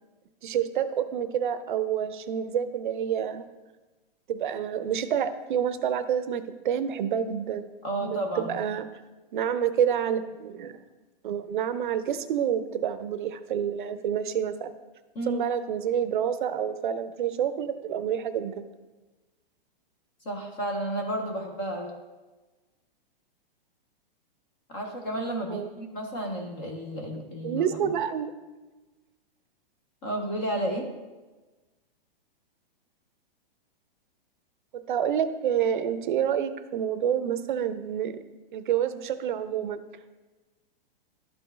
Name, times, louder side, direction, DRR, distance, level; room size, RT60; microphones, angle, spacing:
voice 1, 0.4-3.4 4.3-7.7 8.0-8.8 9.3-10.8 11.2-14.7 15.3-18.6 25.5-25.7 27.4-28.3 34.7-38.2 38.5-39.8, right 9 dB, 55° right, 11 dB, 0.6 m, -28 dB
voice 2, 7.8-8.6 15.1-15.5 20.2-21.9 24.7-27.9 30.0-30.9, right 1 dB, 15° left, 2 dB, 0.4 m, -32 dB
12.0 x 4.4 x 3.2 m, 1.2 s
hypercardioid pair, 165°, 29 cm